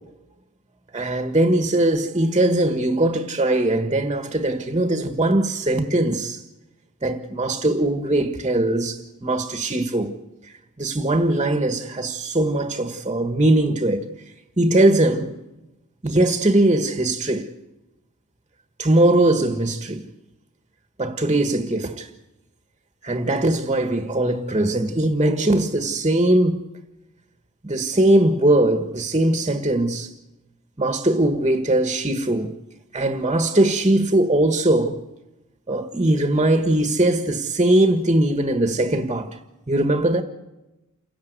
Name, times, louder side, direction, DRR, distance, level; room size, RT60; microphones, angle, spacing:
voice 1, 0.9-6.4 7.0-10.1 10.8-14.0 14.6-15.4 16.0-17.5 18.8-20.0 21.0-22.1 23.0-26.7 27.6-30.1 30.8-32.6 32.9-35.0 35.7-39.3 39.7-40.2, right 1 dB, 25° right, 1.5 m, -20 dB
28.5 x 17.5 x 8.1 m
head